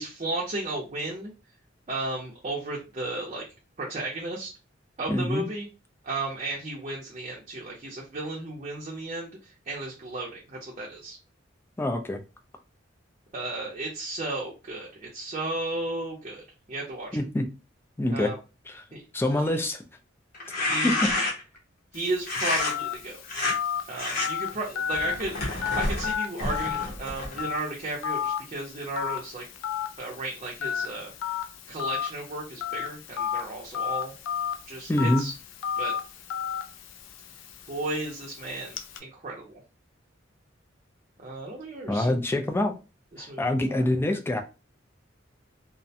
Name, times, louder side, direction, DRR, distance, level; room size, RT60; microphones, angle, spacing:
voice 1, 0.0-1.3 1.9-3.4 3.8-4.5 5.0-5.7 6.0-11.2 13.3-17.2 18.1-18.4 18.9-19.0 19.3-19.6 20.7-20.9 21.9-23.2 23.9-29.4 30.0-31.1 31.7-34.1 34.7-35.3 35.8-35.9 37.7-39.6 41.2-42.2 43.1-43.9, right 2 dB, 35° right, -3 dB, 0.5 m, -34 dB
voice 2, 5.1-5.4 11.8-12.2 17.1-17.5 18.0-18.3 18.7-18.9 19.1-19.8 20.8-21.1 34.9-35.2 41.9-42.8 43.2-44.4, left 1 dB, 10° left, 5 dB, 0.3 m, -25 dB
sound 1, 20.3-21.6 22.3-22.7 23.2-23.5 24.0-24.3 24.9-27.5, left 2 dB, 50° left, 0.8 m, -29 dB
Telephone, 21.9-39.0, left 8 dB, 90° left, 0.4 m, -33 dB
2.4 x 2.1 x 2.7 m, 0.30 s
head